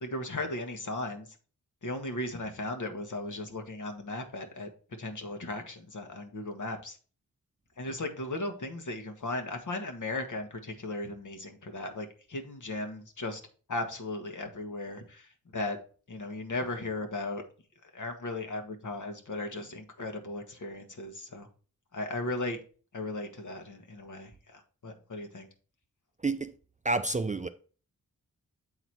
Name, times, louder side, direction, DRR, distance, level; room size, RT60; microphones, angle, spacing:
voice 1, 0.0-1.4 1.8-4.7 5.0-7.0 7.8-13.4 13.7-15.8 16.1-17.4 17.8-21.5 21.9-22.6 22.9-25.5, left 2 dB, 55° left, 1.4 m, -36 dB
voice 2, 26.8-27.5, right 3 dB, 20° right, 0.4 m, -29 dB
8.0 x 4.0 x 4.4 m
wide cardioid pair, 75°, 35 cm